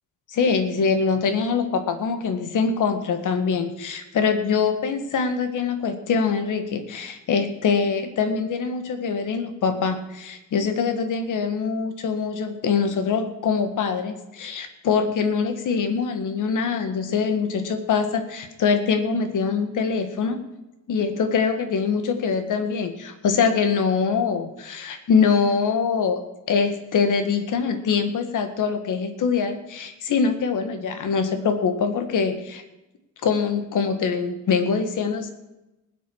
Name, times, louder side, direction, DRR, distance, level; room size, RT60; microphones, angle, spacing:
voice 1, 0.3-20.4 20.9-26.2 26.5-32.6 33.2-35.3, left 5 dB, 65° left, 9 dB, 1.8 m, -23 dB
19.0 x 8.3 x 6.3 m, 0.97 s
wide cardioid pair, 165°, 33 cm